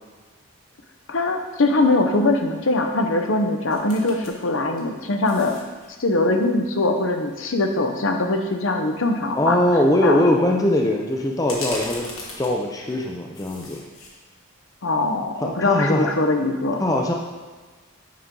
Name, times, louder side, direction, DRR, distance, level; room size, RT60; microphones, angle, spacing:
voice 1, 1.1-5.5 6.0-9.6 10.0-10.2 14.8-16.8, left 2 dB, 65° left, 4 dB, 0.7 m, -22 dB
sound 1, 3.7-4.3 4.7-5.9 8.5-8.6 9.1-9.3 11.4-13.0 13.3-14.1 14.5-14.6, left 2 dB, 80° left, 1.6 m, -36 dB
voice 2, 9.4-12.1 12.4-13.8 15.4-16.1 16.8-17.1, left 1 dB, 15° left, 0 dB, 0.5 m, -21 dB
8.5 x 5.3 x 3.7 m, 1.3 s
head